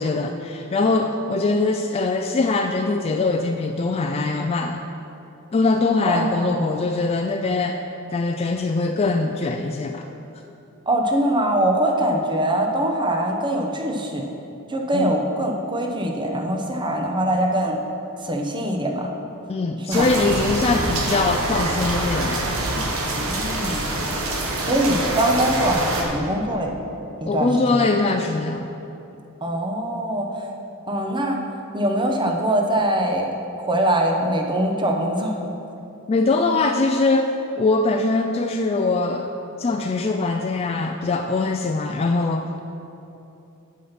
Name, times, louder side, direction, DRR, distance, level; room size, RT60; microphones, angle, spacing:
voice 1, 0.0-4.8 5.5-7.8 8.1-10.0 14.9-15.1 19.5-22.9 27.3-28.7 36.1-37.3 37.6-39.3 39.6-42.6, left 3 dB, 30° left, 4 dB, 0.3 m, -22 dB
voice 2, 6.1-6.9 10.9-14.2 14.7-17.8 18.2-19.1 19.9-20.1 23.2-23.9 24.6-26.7 27.2-27.9 29.4-30.5 30.9-31.4 31.7-35.4, right 1 dB, 20° right, 1 dB, 0.9 m, -23 dB
sound 1, 19.9-26.0, right 2 dB, 75° right, 1.2 m, -25 dB
8.4 x 5.8 x 5.8 m, 2.8 s
head